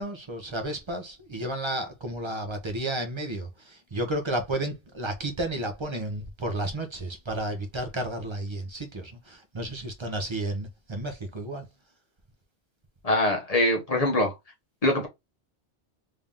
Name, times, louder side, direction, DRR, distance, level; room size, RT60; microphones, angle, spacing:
voice 1, 0.0-11.6, right 1 dB, 30° right, 0.7 m, -32 dB
voice 2, 13.0-14.3 14.8-15.1, left 1 dB, 35° left, 1.0 m, -23 dB
3.3 x 2.7 x 3.6 m
omnidirectional pair, 1.2 m